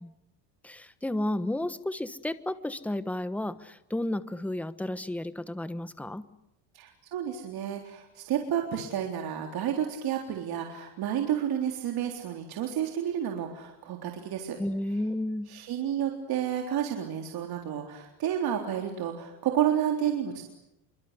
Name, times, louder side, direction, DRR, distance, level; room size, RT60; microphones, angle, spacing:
voice 1, 0.6-6.2 14.6-15.5, left 1 dB, 5° left, 13 dB, 1.2 m, -32 dB
voice 2, 6.7-14.6 15.5-20.4, right 9 dB, 50° right, 2 dB, 3.8 m, -30 dB
27.5 x 24.5 x 8.2 m, 0.87 s
cardioid pair, 135°, 46 cm